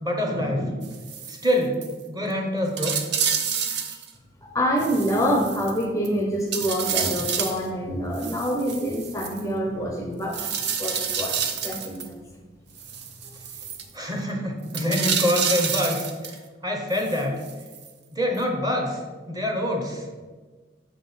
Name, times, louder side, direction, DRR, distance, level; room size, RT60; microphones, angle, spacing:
voice 1, 0.0-0.9 1.3-1.8 2.1-3.0 13.9-16.4 16.6-17.4 18.1-19.0 19.3-20.1, left 1 dB, 20° right, 2 dB, 0.9 m, -25 dB
sound 1, 0.8-1.5 1.8-1.9 2.3-2.4 2.8-4.1 4.8-6.1 6.5-7.6 8.1-9.4 10.3-12.1 12.8-13.8 14.7-16.4 16.9-17.9 18.4-18.5, right 7 dB, 60° right, 0.6 m, -29 dB
voice 2, 4.4-12.1, equal, 15° left, 1 dB, 0.5 m, -26 dB
6.5 x 3.8 x 5.4 m, 1.4 s
head